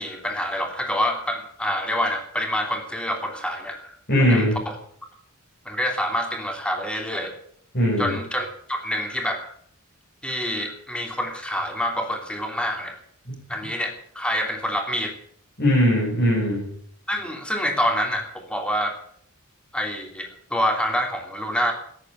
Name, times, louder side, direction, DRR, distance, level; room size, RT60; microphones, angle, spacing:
voice 1, 0.0-3.9 4.3-4.7 5.6-7.3 8.0-9.5 10.2-13.0 13.5-15.1 17.1-19.0 19.7-21.7, equal, 5° left, 3 dB, 2.9 m, -27 dB
voice 2, 4.1-4.6 7.7-8.1 13.3-13.4 15.6-16.6, equal, 50° left, -6 dB, 6.9 m, -20 dB
14.5 x 10.5 x 9.1 m, 0.64 s
head